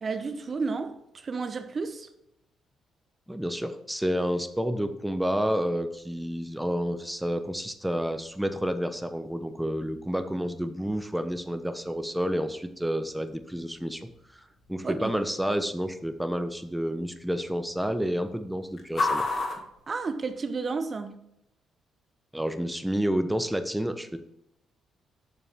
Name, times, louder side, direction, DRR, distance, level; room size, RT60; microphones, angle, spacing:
voice 1, 0.0-2.1 14.8-15.1 19.9-21.3, right 4 dB, 45° right, 0.9 m, -32 dB
voice 2, 3.3-14.1 14.7-19.3 22.3-24.2, equal, 5° right, 1.0 m, -29 dB
sound 1, 6.0-20.8, left 3 dB, 50° left, 2.1 m, -40 dB
8.6 x 6.8 x 3.6 m
hypercardioid pair, 55°, 0 cm